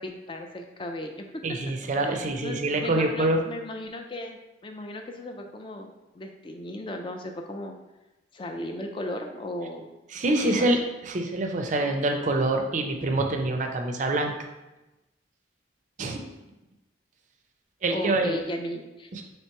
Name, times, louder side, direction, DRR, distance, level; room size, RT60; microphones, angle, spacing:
voice 1, 0.0-1.6 1.9-7.7 8.3-9.9 10.4-10.7 17.9-19.2, left 1 dB, 25° left, 4 dB, 0.3 m, -36 dB
voice 2, 1.4-3.4 10.1-10.8 11.0-14.3 16.0-16.2 17.8-18.4 19.1-19.2, right 2 dB, 40° right, 4 dB, 0.4 m, -25 dB
3.2 x 2.9 x 4.4 m, 1.0 s
head